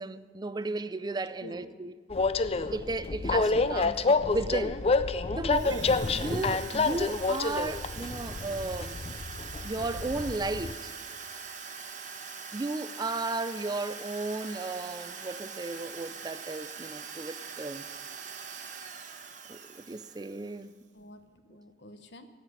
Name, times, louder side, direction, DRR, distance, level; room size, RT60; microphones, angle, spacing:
voice 1, 0.0-1.9 2.7-4.8 5.3-8.9 9.6-10.9 12.5-17.9 19.5-20.8, right 2 dB, 25° right, 0.4 m, -34 dB
voice 2, 1.4-1.8 5.6-6.0 20.9-22.3, left 1 dB, 75° left, 1.1 m, -49 dB
Train, 2.1-10.7, left 3 dB, 35° left, 0.5 m, -28 dB
Drill, 5.5-20.7, right 5 dB, 45° right, 1.0 m, -43 dB
16.5 x 5.8 x 9.6 m
head